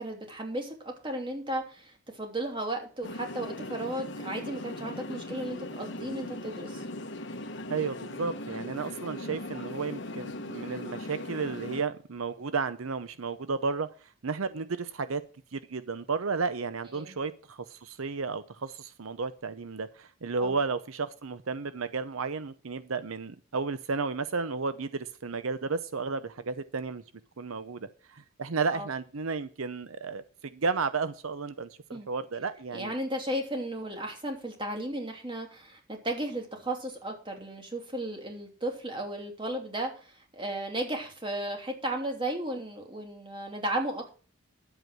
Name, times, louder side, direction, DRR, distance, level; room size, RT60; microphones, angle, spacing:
voice 1, 0.0-6.8 16.9-17.1 20.4-20.5 28.7-28.9 31.9-32.1 32.7-44.2, right 1 dB, 25° right, 2.9 m, -35 dB
sound 1, 3.0-11.8, left 1 dB, 55° left, 1.3 m, -39 dB
voice 2, 7.7-13.9 14.2-15.2 15.5-27.0 27.4-32.9, right 4 dB, 80° right, 0.7 m, -33 dB
11.0 x 8.1 x 6.2 m
head